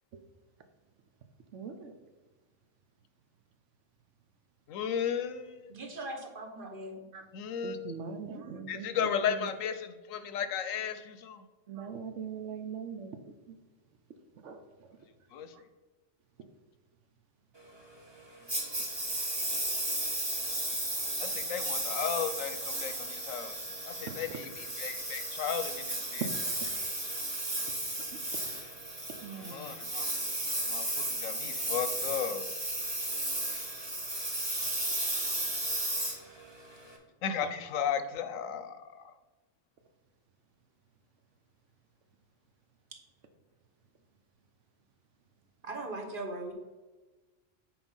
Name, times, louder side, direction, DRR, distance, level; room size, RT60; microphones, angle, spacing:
voice 1, 1.5-1.9 7.1-7.3 7.6-9.5 11.7-13.2 13.5-13.6 14.4-14.6 15.5-15.6 24.1-24.2 26.2-26.3 26.6-26.7 29.2-29.7, right 6 dB, 70° right, 7 dB, 1.1 m, -40 dB
voice 2, 4.7-5.7 7.3-8.0 8.7-11.4 15.3-15.5 18.6-19.0 21.2-23.6 23.8-26.3 29.3-30.1 30.7-32.5 37.2-39.0, left 8 dB, 85° left, 10 dB, 1.0 m, -35 dB
voice 3, 5.7-6.9 45.6-46.5, right 2 dB, 45° right, 2 dB, 1.2 m, -39 dB
Engine, 18.5-36.9, right 1 dB, 20° right, 1.3 m, -34 dB
7.7 x 4.4 x 5.4 m, 1.2 s
omnidirectional pair, 1.3 m